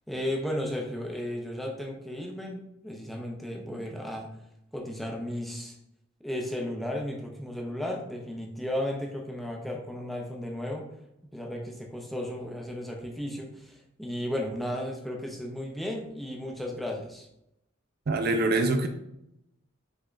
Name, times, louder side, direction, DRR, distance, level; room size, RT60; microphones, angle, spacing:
voice 1, 0.1-4.3 4.7-5.8 6.2-10.8 11.3-17.3, left 1 dB, ahead, 0 dB, 0.6 m, -34 dB
voice 2, 18.1-18.9, right 2 dB, 50° right, 6 dB, 0.4 m, -24 dB
4.9 x 3.5 x 2.4 m, 0.81 s
head